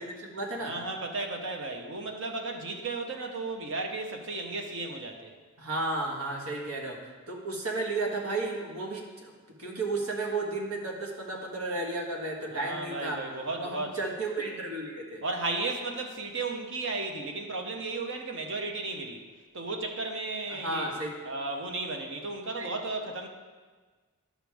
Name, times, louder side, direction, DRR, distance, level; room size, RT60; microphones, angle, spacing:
voice 1, 0.0-0.7 5.6-7.0 7.3-9.3 9.6-13.2 13.6-15.2 20.5-21.1 22.6-22.7, right 2 dB, 80° right, 0 dB, 1.5 m, -33 dB
voice 2, 0.6-5.3 12.5-14.0 15.2-19.2 19.5-20.9 21.2-23.3, right 3 dB, 60° right, 3 dB, 0.9 m, -34 dB
11.0 x 6.1 x 3.5 m, 1.4 s
head